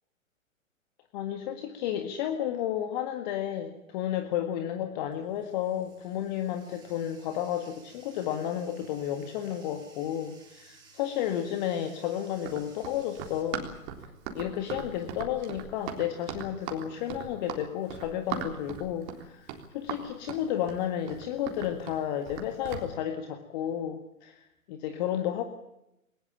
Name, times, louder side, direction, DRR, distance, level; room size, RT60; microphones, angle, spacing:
voice 1, 1.1-13.7 14.3-25.4, left 10 dB, 30° left, 7 dB, 1.8 m, -32 dB
Bathtub (filling or washing), 4.2-13.4, right 4 dB, 10° right, 7.1 m, -58 dB
Run, 12.4-22.9, right 8 dB, 30° right, 3.7 m, -39 dB
21.0 x 20.5 x 8.9 m, 0.86 s
figure-of-eight pair, 130°, 41 cm